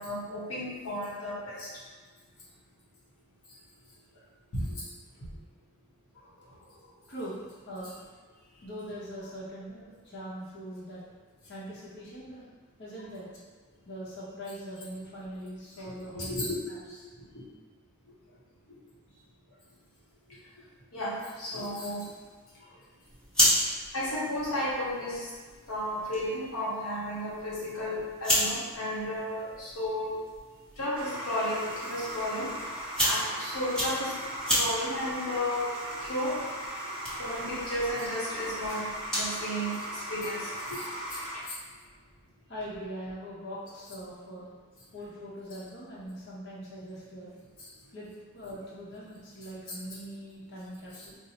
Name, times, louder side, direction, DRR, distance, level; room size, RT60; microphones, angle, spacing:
voice 1, 0.0-1.7 4.5-4.8 16.1-16.5 16.9-17.0 20.9-22.1 23.9-25.2 25.7-30.2 30.8-32.5 33.0-34.1 34.5-35.7 36.0-36.4 37.2-40.8 41.3-41.4, left 1 dB, 85° left, -6 dB, 0.9 m, -33 dB
voice 2, 6.1-8.1 8.6-11.0 11.5-12.4 12.8-13.3 13.9-17.0 18.3-18.4 19.1-19.6 22.6-22.8 23.7-23.8 29.0-29.2 42.5-44.5 44.9-47.3 47.9-48.1 48.3-51.2, equal, 55° left, -8 dB, 0.7 m, -42 dB
sound 1, 23.0-39.4, equal, 5° left, 0.8 m, -34 dB
sound 2, 30.9-41.4, right 1 dB, 25° right, 0.6 m, -38 dB
4.1 x 2.0 x 2.8 m, 1.4 s
head